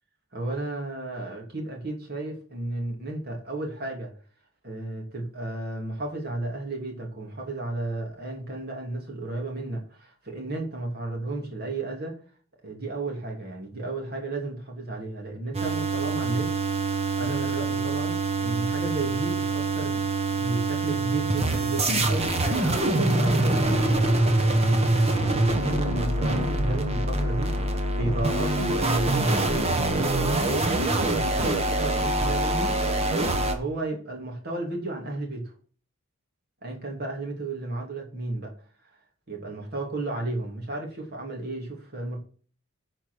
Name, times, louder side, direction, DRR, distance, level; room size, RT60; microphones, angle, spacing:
voice 1, 0.3-4.1 4.6-12.2 12.6-20.0 20.4-23.9 24.4-35.5 36.6-38.5 39.3-42.2, right 2 dB, 45° right, 2.7 m, -33 dB
sound 1, 15.5-33.5, right 2 dB, 30° right, 1.2 m, -25 dB
9.9 x 4.7 x 6.4 m
head